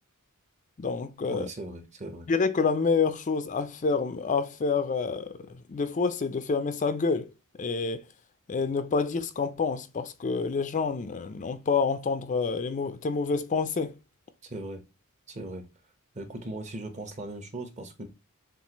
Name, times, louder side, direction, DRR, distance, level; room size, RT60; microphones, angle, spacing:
voice 1, 0.8-1.5 2.3-5.4 5.7-7.3 7.6-8.0 8.5-14.0, left 4 dB, 35° left, 0.4 m, -28 dB
voice 2, 1.3-2.3 14.4-14.8 15.3-15.6 16.1-18.1, right 2 dB, 30° right, 0.9 m, -38 dB
7.1 x 2.5 x 2.9 m
head